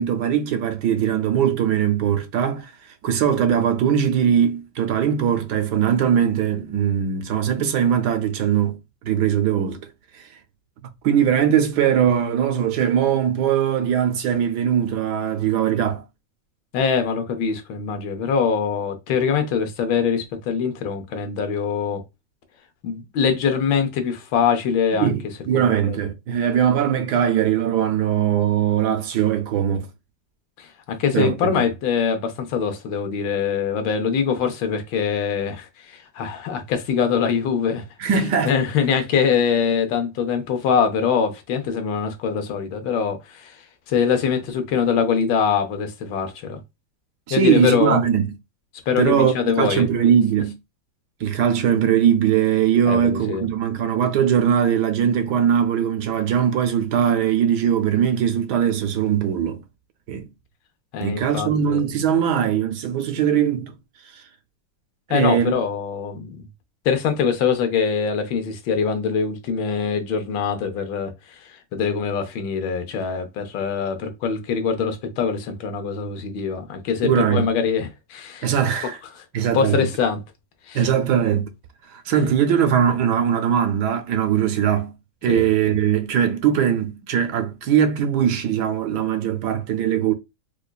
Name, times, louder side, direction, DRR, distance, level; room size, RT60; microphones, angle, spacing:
voice 1, 0.0-8.8 9.0-9.9 10.1-10.3 11.0-16.0 25.0-29.9 31.1-31.6 38.0-38.6 47.3-48.3 49.0-50.5 51.2-59.6 60.1-60.3 61.0-63.8 64.1-64.2 65.1-65.6 77.0-77.5 78.4-79.0 79.3-79.9 80.7-81.5 81.9-84.9 85.2-90.1, right 8 dB, 70° right, 1.1 m, -20 dB
voice 2, 16.7-22.0 22.8-25.1 25.5-26.0 30.6-37.8 38.4-43.6 43.9-46.6 47.3-48.0 48.9-49.9 52.9-53.5 60.9-61.9 65.1-66.4 66.8-78.5 79.5-80.2 80.7-80.9 85.3-85.8, left 6 dB, 90° left, 1.5 m, -23 dB
4.8 x 2.3 x 2.3 m
omnidirectional pair, 2.0 m